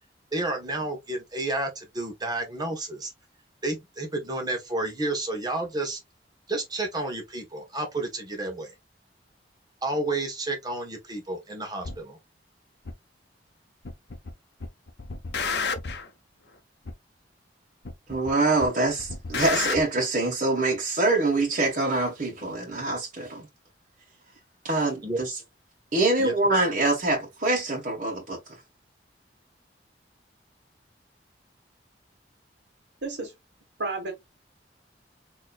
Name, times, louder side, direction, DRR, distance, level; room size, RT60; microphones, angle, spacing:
voice 1, 0.3-3.1 3.6-6.0 6.5-8.7 9.8-12.2 25.0-25.2 26.2-26.3, right 2 dB, 25° right, 1.2 m, -31 dB
sound 1, 11.8-12.0 12.9-13.0 13.9-14.3 14.6-16.1 16.9-17.0 17.9-18.3 18.6-19.8, left 5 dB, 70° left, 0.7 m, -31 dB
voice 2, 18.1-23.5 24.6-25.4 25.9-28.6, right 2 dB, 45° right, 1.3 m, -25 dB
voice 3, 33.0-33.3 33.8-34.1, right 3 dB, 80° right, 1.6 m, -31 dB
4.2 x 3.0 x 2.4 m
head